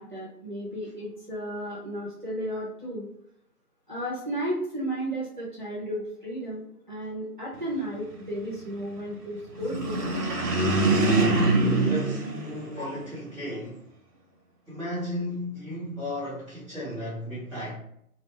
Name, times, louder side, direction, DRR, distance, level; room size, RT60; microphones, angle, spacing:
voice 1, 0.0-3.1 3.9-6.6 6.9-10.0, right 1 dB, 30° right, -6 dB, 0.6 m, -33 dB
sound 1, 9.6-13.2, right 2 dB, 85° right, 0.9 m, -24 dB
voice 2, 11.6-13.8 14.7-17.7, left 1 dB, 5° left, -12 dB, 0.8 m, -34 dB
2.6 x 2.1 x 3.3 m, 0.73 s
figure-of-eight pair, 160°, 46 cm